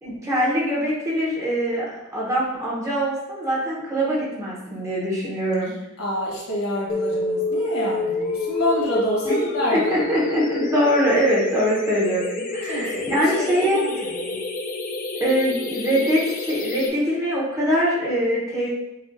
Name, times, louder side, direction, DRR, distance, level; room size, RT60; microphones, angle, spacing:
voice 1, 0.0-1.8 2.1-5.7 9.2-9.4 9.7-12.3 12.5-14.1 15.2-18.7, equal, 15° right, -6 dB, 0.9 m, -23 dB
voice 2, 6.0-10.1 12.6-14.4, left 1 dB, 70° left, -4 dB, 1.4 m, -27 dB
sound 1, 6.9-16.9, left 2 dB, 40° left, 0.4 m, -28 dB
5.9 x 2.4 x 2.6 m, 0.99 s
head